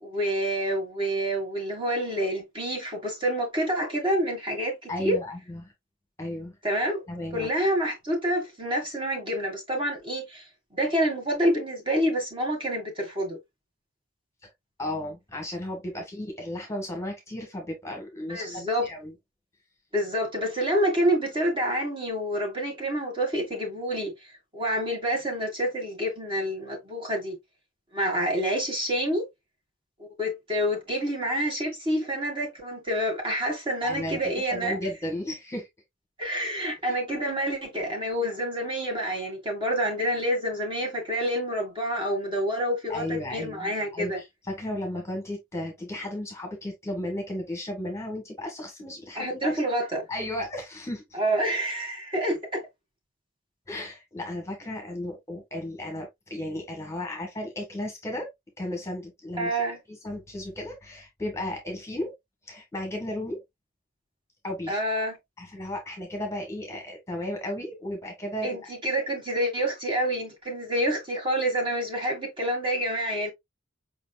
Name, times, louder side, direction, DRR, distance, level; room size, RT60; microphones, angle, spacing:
voice 1, 0.0-5.2 6.6-7.0 7.3-10.4 10.7-13.4 18.3-18.9 19.9-24.1 24.5-27.4 27.9-29.2 30.0-34.8 36.2-44.2 49.2-50.0 51.1-52.7 59.4-59.8 64.7-65.2 68.4-73.3, equal, 25° right, 2.0 m, -28 dB
voice 2, 4.9-5.7 6.2-6.6 7.1-7.5 14.8-19.1 33.8-34.2 34.5-35.7 36.8-36.9 42.9-49.6 50.1-51.2 53.7-58.3 58.6-59.5 59.9-62.1 62.4-63.4 64.4-64.8 65.4-68.6, left 1 dB, 15° left, 1.4 m, -34 dB
5.2 x 4.0 x 2.3 m
head